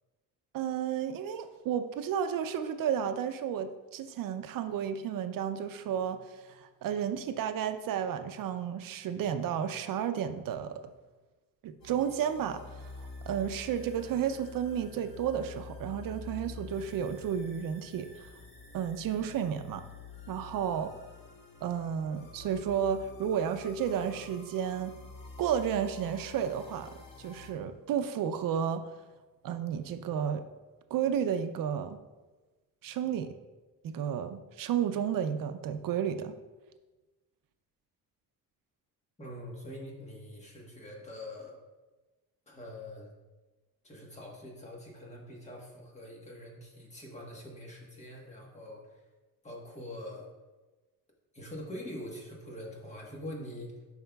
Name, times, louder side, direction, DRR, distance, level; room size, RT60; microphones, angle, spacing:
voice 1, 0.5-10.8 11.6-18.3 18.7-19.8 20.3-20.9 21.6-25.0 25.4-28.9 29.4-30.4 30.9-32.0 32.8-33.3 33.8-36.4, right 8 dB, 70° right, 9 dB, 0.5 m, -32 dB
sound 1, 11.8-27.5, left 4 dB, 80° left, 1.5 m, -48 dB
voice 2, 39.2-41.6 42.5-43.1 43.8-49.0 49.4-50.3 51.3-53.7, left 1 dB, 20° left, -1 dB, 1.2 m, -44 dB
11.5 x 5.4 x 2.3 m, 1.2 s
wide cardioid pair, 180°, 34 cm